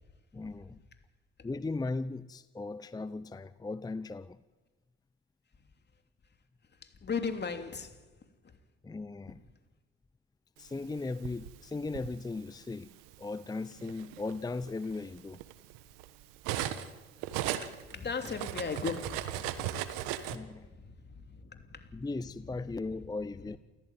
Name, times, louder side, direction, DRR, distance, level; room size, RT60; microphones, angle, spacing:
voice 1, 0.3-0.8 1.4-4.4 8.8-9.4 10.6-12.9 13.2-15.4 20.3-20.7 21.9-23.6, left 3 dB, 10° left, 0.7 m, -37 dB
voice 2, 6.8-8.0 8.4-8.6 17.6-22.0, left 5 dB, 30° left, 3.0 m, -38 dB
Cutlery silverware, 10.8-12.1 13.1-13.3 13.7-16.9 17.2-20.4, right 12 dB, 75° right, 1.6 m, -37 dB
29.0 x 15.0 x 9.3 m
hypercardioid pair, 70°, 33 cm